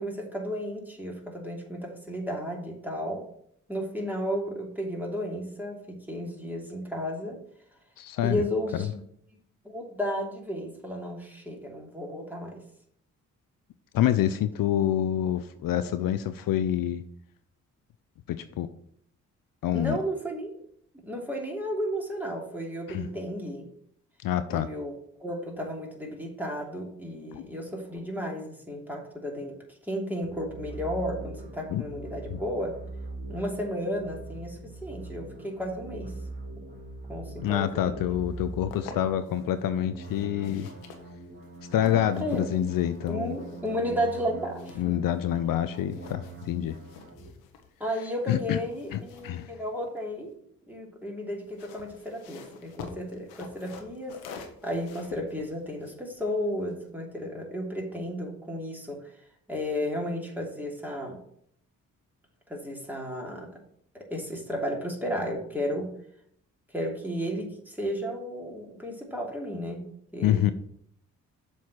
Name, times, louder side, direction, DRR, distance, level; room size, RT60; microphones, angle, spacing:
voice 1, 0.0-3.3 3.7-7.4 8.2-9.0 9.6-12.6 19.7-20.6 21.0-23.7 24.5-24.9 25.2-29.6 29.9-32.8 33.3-36.1 37.1-38.0 42.2-42.5 43.1-45.0 47.8-50.3 50.7-54.2 54.6-59.1 59.5-61.2 62.5-63.5 64.1-65.9 66.7-69.9 70.1-70.5, equal, 5° right, -1 dB, 2.8 m, -33 dB
voice 2, 8.0-8.4 13.9-17.0 18.3-18.7 19.6-20.0 22.9-23.1 24.2-24.7 27.3-27.4 31.7-31.8 32.3-32.4 37.4-40.7 41.7-43.3 44.8-46.8 48.3-48.6 48.9-49.5 70.2-70.5, left 11 dB, 65° left, 12 dB, 0.6 m, -27 dB
sound 1, 30.2-47.3, right 2 dB, 30° right, 2.1 m, -42 dB
sound 2, 38.3-39.4 40.0-45.4 45.7-50.3 51.3-56.9, left 5 dB, 85° left, 1.0 m, -48 dB
7.2 x 4.4 x 6.3 m, 0.69 s
hypercardioid pair, 45°, 36 cm